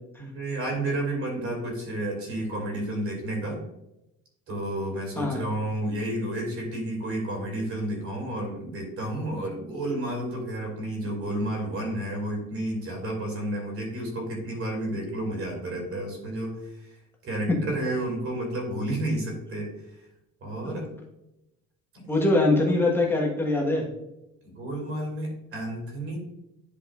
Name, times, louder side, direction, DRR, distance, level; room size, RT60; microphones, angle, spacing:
voice 1, 0.2-3.6 4.5-17.0 17.2-20.0 20.4-20.9 21.9-22.3 24.4-26.2, right 1 dB, 45° right, 0 dB, 2.6 m, -31 dB
voice 2, 22.1-23.9, left 2 dB, 5° left, -1 dB, 1.4 m, -23 dB
10.5 x 4.9 x 2.5 m, 0.90 s
cardioid pair, 155°, 31 cm